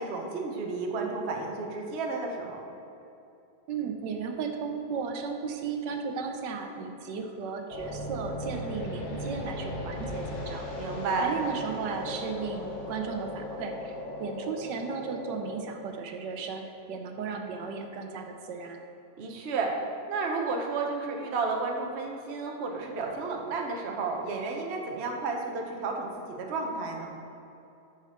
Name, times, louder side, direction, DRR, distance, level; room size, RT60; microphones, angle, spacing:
voice 1, 0.0-2.6 10.8-11.3 19.2-19.7 20.1-27.1, right 4 dB, 50° right, 1 dB, 0.9 m, -32 dB
voice 2, 3.7-10.7 11.2-13.9 14.2-16.6 16.9-18.8, right 5 dB, 85° right, 4 dB, 1.4 m, -35 dB
sound 1, 7.7-15.6, left 1 dB, 65° left, 1.9 m, -37 dB
10.0 x 5.3 x 4.3 m, 2.8 s
omnidirectional pair, 1.8 m